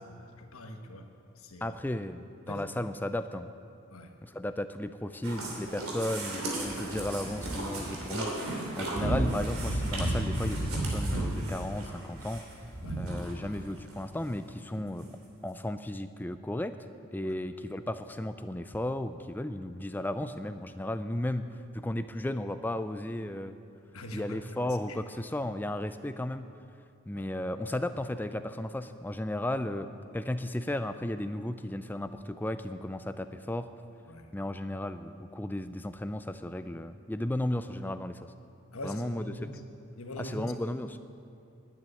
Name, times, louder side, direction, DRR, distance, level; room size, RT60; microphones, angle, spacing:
voice 1, 0.1-1.1 1.4-1.8 2.5-2.8 3.9-4.1 12.8-13.0 17.2-17.3 23.9-25.0 27.1-27.3 34.1-34.3 38.7-39.5 40.0-40.5, left 1 dB, 75° left, 5 dB, 1.2 m, -43 dB
voice 2, 1.6-3.5 4.2-12.4 13.0-15.2 15.4-16.8 17.1-23.6 24.1-26.5 27.1-33.7 34.3-38.3 38.8-39.5 40.2-41.0, left 1 dB, 10° left, 10 dB, 0.4 m, -34 dB
sound 1, 5.2-13.6 13.9-14.0 14.5-14.6 14.8-14.9, right 1 dB, 75° right, 3.0 m, -33 dB
10.5 x 9.3 x 9.7 m, 2.6 s
head